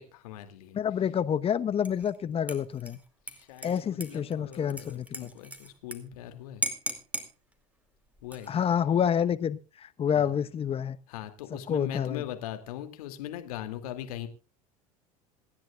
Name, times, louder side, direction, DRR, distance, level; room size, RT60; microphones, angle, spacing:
voice 1, 0.0-0.8 3.3-6.6 8.2-8.6 10.1-10.3 11.1-14.3, left 12 dB, 70° left, 8 dB, 2.5 m, -40 dB
voice 2, 0.7-3.0 3.6-5.3 8.5-11.0 11.5-12.2, left 8 dB, 30° left, 12 dB, 1.1 m, -28 dB
Dishes pots and pans / Liquid, 1.8-2.2 2.5-6.0 6.2-6.3 6.6-7.3 8.2-8.7, right 2 dB, 5° right, 2.5 m, -37 dB
27.0 x 10.5 x 2.4 m, 0.29 s
hypercardioid pair, 85°, 20 cm